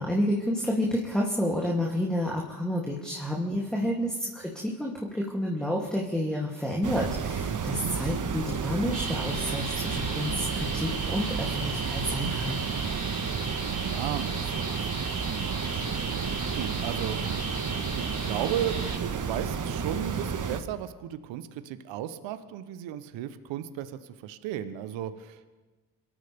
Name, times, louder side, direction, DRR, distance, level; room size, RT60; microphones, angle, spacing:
voice 1, 0.0-12.6, equal, ahead, -2 dB, 2.9 m, -30 dB
sound 1, 6.8-20.6, right 6 dB, 40° right, 1.4 m, -31 dB
voice 2, 7.5-7.9 13.6-15.1 15.4-15.9 16.5-17.2 17.9-25.5, right 11 dB, 75° right, 12 dB, 1.0 m, -35 dB
sound 2, 8.9-19.0, right 2 dB, 20° right, 4.5 m, -36 dB
26.0 x 14.0 x 3.6 m, 1.2 s
hypercardioid pair, 45°, 45 cm